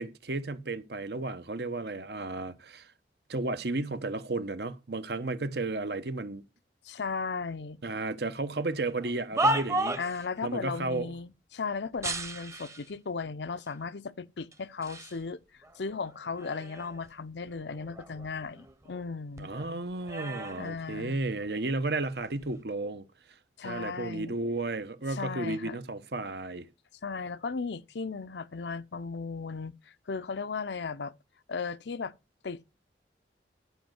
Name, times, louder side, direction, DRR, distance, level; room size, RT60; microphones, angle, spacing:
voice 1, 0.0-2.9 3.3-6.4 7.8-10.0 10.4-11.1 19.4-23.0 23.6-26.7, right 2 dB, 65° right, 1.0 m, -33 dB
voice 2, 6.8-7.8 10.0-15.4 15.8-19.5 20.6-21.2 23.6-24.4 25.1-25.8 27.0-31.1 31.5-32.1 32.4-32.6, left 4 dB, 75° left, 0.6 m, -36 dB
sound 1, 8.9-10.2 12.0-12.9 13.7-13.8 14.5-15.2 15.6-17.1 17.4-19.1 19.4-21.5 22.2-22.5, right 1 dB, 15° right, 0.9 m, -34 dB
11.5 x 5.3 x 7.9 m
head